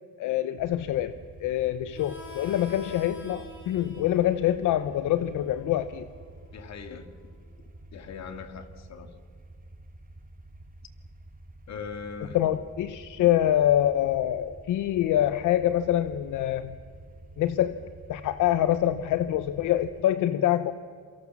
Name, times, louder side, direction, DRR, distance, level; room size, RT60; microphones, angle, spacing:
voice 1, 0.2-6.1 12.3-16.8 17.4-17.7 18.1-20.7, left 12 dB, 85° left, 12 dB, 0.9 m, -25 dB
sound 1, 0.6-20.0, right 2 dB, 30° right, 2.4 m, -49 dB
Harmonica, 1.9-7.2, left 2 dB, 40° left, 5.0 m, -48 dB
voice 2, 6.5-7.1 7.9-9.1 11.7-12.4, left 6 dB, 60° left, 7 dB, 2.5 m, -40 dB
27.5 x 24.5 x 7.3 m, 2.1 s
cardioid pair, 90°, 30 cm